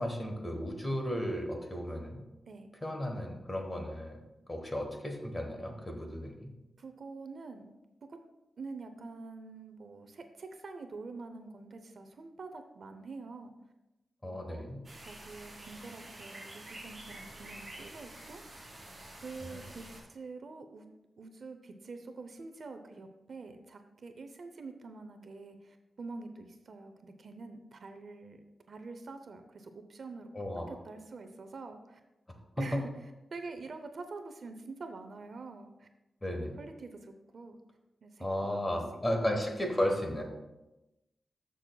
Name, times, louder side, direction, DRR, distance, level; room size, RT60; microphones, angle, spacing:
voice 1, 0.0-2.2 2.8-4.2 4.5-6.5 14.2-14.8 19.4-19.6 30.3-30.7 32.6-32.8 36.2-36.6 38.2-40.2, left 1 dB, 15° left, 3 dB, 1.1 m, -34 dB
voice 2, 6.8-7.7 8.1-8.2 8.6-13.5 14.2-14.7 15.1-18.4 19.2-20.9 21.2-30.3 30.7-32.0 32.6-32.9 33.3-35.9 36.6-37.6 38.0-38.3 38.5-38.8, right 3 dB, 50° right, 7 dB, 0.6 m, -46 dB
sound 1, 14.8-20.0, right 1 dB, 30° right, 2.5 m, -48 dB
13.5 x 6.1 x 2.3 m, 1.0 s
wide cardioid pair, 175°, 0 cm